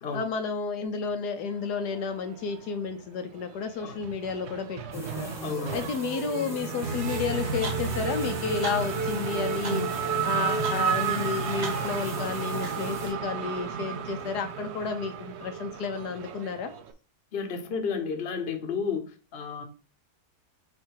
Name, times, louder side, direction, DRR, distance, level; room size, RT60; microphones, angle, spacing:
voice 1, 0.1-5.3 5.7-16.7, left 5 dB, 80° left, 1.3 m, -32 dB
Race car auto racing / Accelerating revving vroom, 1.9-2.9 3.2-16.9, right 7 dB, 60° right, 0.7 m, -33 dB
sound 1, 4.9-13.1, right 2 dB, ahead, 1.0 m, -39 dB
voice 2, 5.4-5.9 17.3-19.6, left 5 dB, 45° left, 1.1 m, -32 dB
sound 2, 6.8-13.1, right 2 dB, 80° right, 1.9 m, -35 dB
7.4 x 2.7 x 4.7 m
omnidirectional pair, 1.7 m